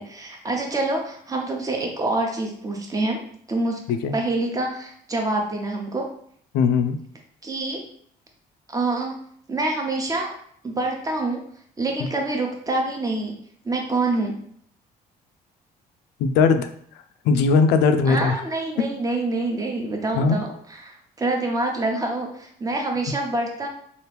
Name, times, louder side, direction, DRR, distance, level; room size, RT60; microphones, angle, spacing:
voice 1, 0.0-6.1 7.4-7.8 8.7-9.2 9.5-10.3 10.6-11.4 11.8-13.3 13.6-14.4 18.1-23.7, right 2 dB, 20° right, 2 dB, 0.7 m, -26 dB
voice 2, 6.5-7.0 16.2-16.7 17.3-18.4 20.1-20.4, left 5 dB, 85° left, 9 dB, 0.4 m, -19 dB
2.9 x 2.5 x 3.3 m, 0.63 s
cardioid pair, 110°, 17 cm